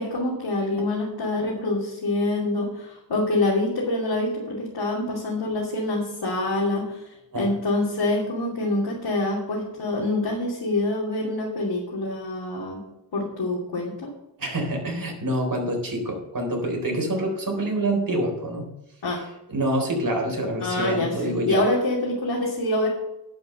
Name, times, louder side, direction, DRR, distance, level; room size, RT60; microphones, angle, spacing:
voice 1, 0.0-7.0 7.3-12.8 13.1-14.1 19.0-19.2 20.6-22.9, left 2 dB, 75° left, -5 dB, 2.9 m, -26 dB
voice 2, 14.4-18.7 19.5-21.6, right 1 dB, 50° right, 1 dB, 4.0 m, -26 dB
11.0 x 5.4 x 7.8 m, 0.86 s
cardioid pair, 70°, 43 cm